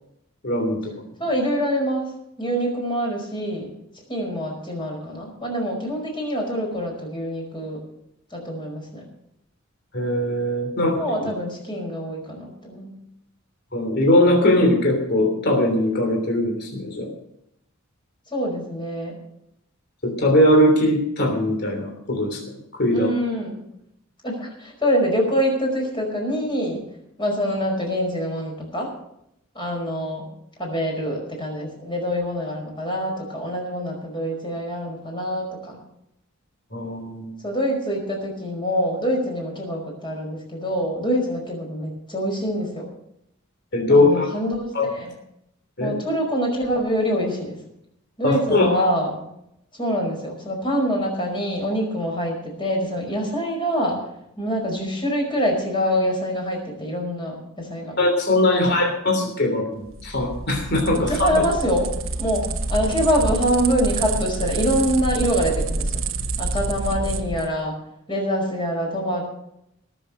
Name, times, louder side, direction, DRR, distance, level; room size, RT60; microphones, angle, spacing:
voice 1, 0.4-0.9 9.9-11.3 13.7-17.1 20.0-22.4 22.8-23.1 36.7-37.3 43.7-44.3 44.7-44.9 45.8-45.9 48.2-48.8 58.0-61.4, left 1 dB, 50° left, 1 dB, 3.2 m, -20 dB
voice 2, 1.2-2.1 2.4-3.7 4.1-7.8 8.3-9.1 11.0-13.0 18.3-19.2 22.9-23.6 24.2-26.8 27.2-28.9 29.5-30.3 30.6-35.8 37.4-42.9 43.9-45.2 45.8-47.6 48.2-49.2 49.7-54.0 54.4-58.0 58.5-58.8 61.1-61.9 62.2-65.9 66.4-67.8 68.1-69.3, equal, 25° left, 0 dB, 5.1 m, -25 dB
sound 1, 59.9-67.5, right 3 dB, 65° right, 1.0 m, -27 dB
19.0 x 7.5 x 6.6 m, 0.80 s
head